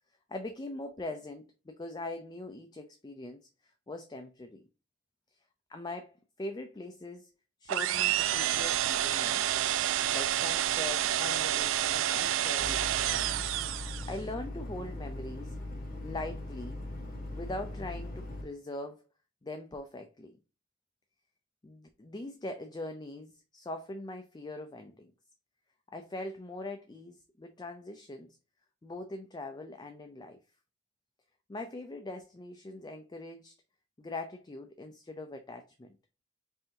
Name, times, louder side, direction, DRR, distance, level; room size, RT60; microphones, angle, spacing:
voice 1, 0.3-4.6 5.3-5.4 5.7-7.3 7.6-9.5 10.1-13.2 14.1-15.6 16.0-16.8 17.4-19.0 19.4-20.4 21.6-25.1 25.9-28.3 28.8-30.4 31.5-33.5 34.0-35.9, left 2 dB, 20° left, 0.4 m, -42 dB
sound 1, 7.7-14.2, right 12 dB, 80° right, 0.3 m, -29 dB
sound 2, 12.6-18.4, left 1 dB, 45° left, 1.3 m, -40 dB
5.5 x 2.6 x 2.7 m
head